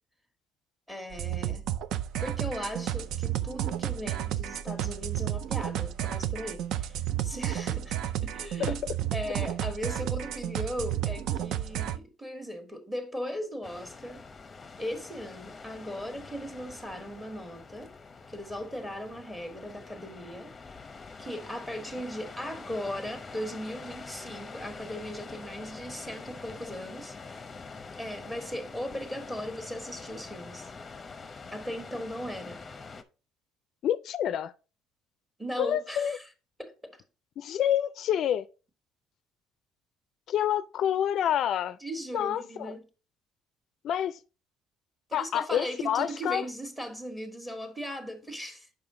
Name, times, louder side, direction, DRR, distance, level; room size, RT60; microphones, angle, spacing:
voice 1, 0.9-1.6 2.2-8.8 9.1-14.2 14.8-17.9 18.3-20.5 21.2-27.2 28.0-30.7 31.5-32.6 35.4-36.2 36.6-37.0 41.8-42.8 45.1-48.7, equal, 10° right, 1.5 m, -38 dB
sound 1, 1.1-12.0, right 11 dB, 70° right, 0.4 m, -32 dB
sound 2, 13.6-33.0, left 4 dB, 20° left, 0.7 m, -45 dB
voice 2, 33.8-34.5 35.6-36.2 37.4-38.5 40.3-41.8 42.1-42.7 43.8-44.2 45.1-46.4, left 10 dB, 60° left, 0.4 m, -28 dB
6.9 x 5.5 x 3.7 m
cardioid pair, 120°, 0 cm